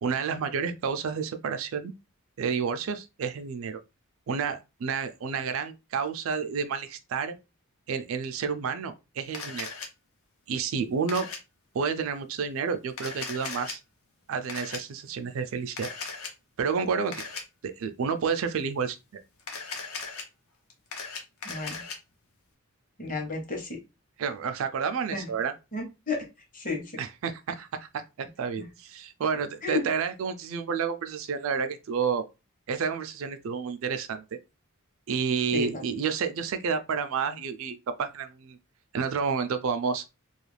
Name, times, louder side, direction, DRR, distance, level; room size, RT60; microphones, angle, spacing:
voice 1, 0.0-1.9 2.4-3.8 4.3-7.3 7.9-9.7 10.5-11.3 11.7-13.8 14.3-15.9 16.6-17.2 17.6-19.2 24.2-25.5 27.0-32.2 32.7-34.2 35.1-38.6 38.9-40.0, right 6 dB, 65° right, 0.4 m, -30 dB
Camera, 9.3-9.9 11.1-11.4 12.9-13.7 14.5-14.8 15.8-16.3 17.1-17.4 19.4-20.2 20.7-22.0, left 5 dB, 75° left, 0.7 m, -37 dB
voice 2, 23.0-23.8 25.1-25.3 25.7-26.2 26.5-26.8 28.6-28.7 29.6-29.8 35.5-35.8, left 3 dB, 35° left, 0.9 m, -32 dB
2.4 x 2.3 x 3.2 m
head